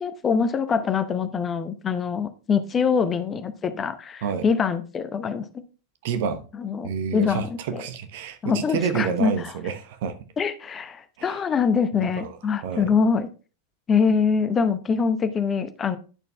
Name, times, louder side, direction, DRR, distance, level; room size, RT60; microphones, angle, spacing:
voice 1, 0.0-5.6 6.6-7.5 7.7-7.8 8.4-9.3 10.4-13.3 13.9-16.0, left 6 dB, 20° left, 0.7 m, -24 dB
voice 2, 6.0-6.4 6.8-10.2 11.2-11.4 12.2-12.3 12.6-12.9, right 7 dB, 50° right, 0.9 m, -28 dB
10.5 x 6.6 x 2.3 m
figure-of-eight pair, 90°, 0 cm